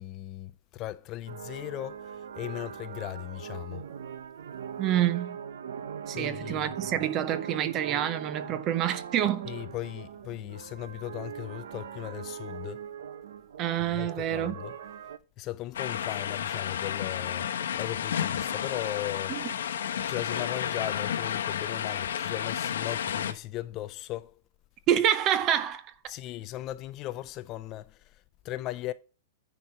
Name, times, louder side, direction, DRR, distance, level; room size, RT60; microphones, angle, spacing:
voice 1, 0.0-3.8 6.1-7.1 9.5-12.9 13.9-14.7 15.4-17.5 17.7-19.5 20.1-24.4 26.1-28.9, left 15 dB, 20° left, 0.3 m, -37 dB
sound 1, 1.3-15.2, right 8 dB, 70° right, 0.7 m, -41 dB
voice 2, 4.8-5.4 6.1-9.6 13.6-14.6 19.3-19.4 24.9-25.9, right 11 dB, 20° right, 0.6 m, -27 dB
sound 2, 15.7-23.3, left 9 dB, 85° left, 1.0 m, -31 dB
9.8 x 4.4 x 5.7 m
supercardioid pair, 175°, 0 cm